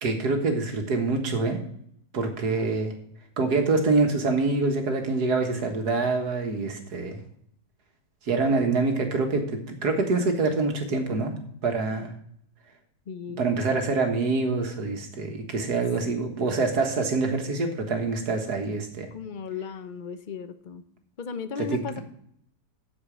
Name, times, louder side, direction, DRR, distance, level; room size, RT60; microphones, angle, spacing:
voice 1, 0.0-1.6 2.1-2.9 3.4-7.2 8.3-11.3 11.6-12.1 13.3-19.1 21.6-21.8, right 3 dB, 70° right, 4 dB, 2.0 m, -25 dB
voice 2, 13.1-13.6 16.4-16.7 19.1-20.8 21.2-22.0, left 6 dB, 55° left, 11 dB, 0.5 m, -36 dB
8.2 x 7.4 x 7.3 m, 0.69 s
omnidirectional pair, 1.7 m